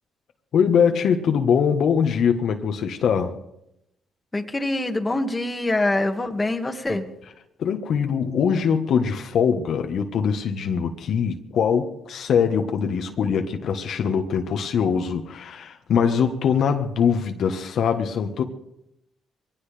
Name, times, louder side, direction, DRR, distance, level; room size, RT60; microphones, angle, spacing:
voice 1, 0.5-3.4 7.6-18.4, left 7 dB, 65° left, 1.3 m, -22 dB
voice 2, 4.3-7.1, left 2 dB, 20° left, 1.8 m, -24 dB
22.5 x 17.5 x 3.4 m
cardioid pair, 90°, 0 cm